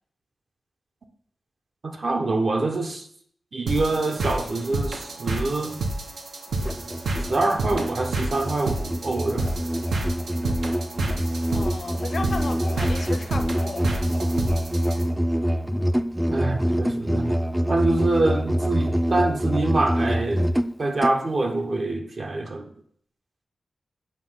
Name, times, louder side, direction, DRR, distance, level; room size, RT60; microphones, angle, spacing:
voice 1, 1.8-3.1 3.5-5.8 7.2-9.5 16.3-17.3 17.7-20.5 20.8-22.7, right 2 dB, 55° right, 0.8 m, -25 dB
sound 1, 3.7-15.0, right 2 dB, 85° right, 0.9 m, -30 dB
Musical instrument, 6.6-21.2, equal, 5° right, 0.3 m, -25 dB
voice 2, 11.5-13.9, left 4 dB, 65° left, 0.7 m, -34 dB
7.5 x 3.0 x 5.5 m
wide cardioid pair, 90°, 0 cm